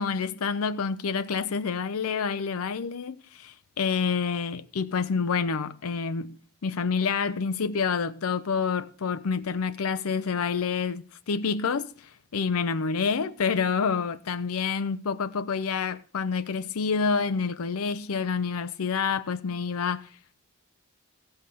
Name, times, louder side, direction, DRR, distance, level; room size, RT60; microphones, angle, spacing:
voice 1, 0.0-6.4 6.6-20.1, left 5 dB, 80° left, 0.6 m, -28 dB
15.0 x 5.7 x 6.6 m
head